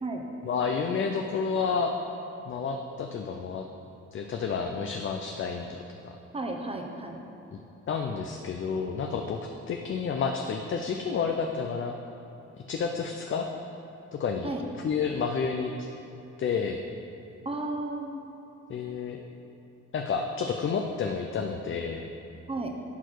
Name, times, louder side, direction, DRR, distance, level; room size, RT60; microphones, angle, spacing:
voice 1, 0.4-2.0 2.4-3.7 4.1-6.2 7.9-12.0 12.5-13.5 14.1-15.9 16.4-16.8 18.7-19.2 19.9-22.1, left 5 dB, 40° left, 4 dB, 0.5 m, -30 dB
voice 2, 6.3-7.2 14.4-14.6 17.4-18.3 22.5-22.7, right 2 dB, 20° right, 2 dB, 0.9 m, -33 dB
11.0 x 4.6 x 4.6 m, 2.9 s
cardioid pair, 90°, 30 cm